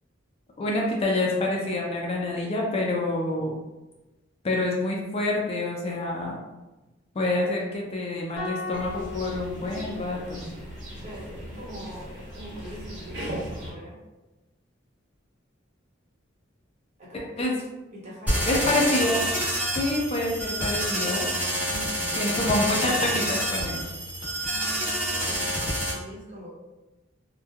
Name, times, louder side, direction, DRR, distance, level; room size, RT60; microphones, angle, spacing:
voice 1, 0.6-3.5 4.4-6.4 7.1-10.5 17.4-17.6 18.4-19.3 19.7-21.3 22.2-23.8, left 2 dB, 30° left, -2 dB, 0.4 m, -27 dB
sound 1, 8.4-10.7, left 4 dB, 70° left, 0.6 m, -37 dB
sound 2, 8.7-13.7, equal, 70° right, 1.0 m, -38 dB
voice 2, 10.9-14.0 17.0-19.0 21.7-22.4 24.4-25.4 25.9-26.5, right 1 dB, 35° right, -7 dB, 0.9 m, -43 dB
sound 3, 18.3-25.9, equal, 10° right, 0.9 m, -27 dB
3.0 x 2.1 x 2.3 m, 1.1 s
head